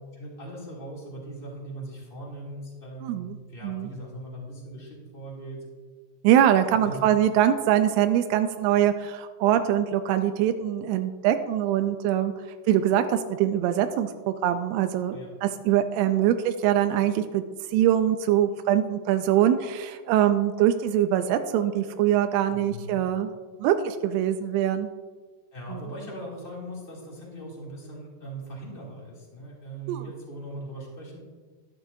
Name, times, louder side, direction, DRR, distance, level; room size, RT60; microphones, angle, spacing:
voice 1, 0.1-5.6 6.8-7.0 15.1-15.3 22.5-23.0 25.5-31.2, right 1 dB, 20° left, -4 dB, 1.9 m, -40 dB
voice 2, 3.0-3.4 3.6-3.9 6.2-12.3 12.7-17.4 17.7-23.3 23.6-24.9 25.7-25.8 29.9-30.0, right 11 dB, 85° right, 8 dB, 2.3 m, -23 dB
12.5 x 12.0 x 2.7 m, 1.4 s
omnidirectional pair, 5.1 m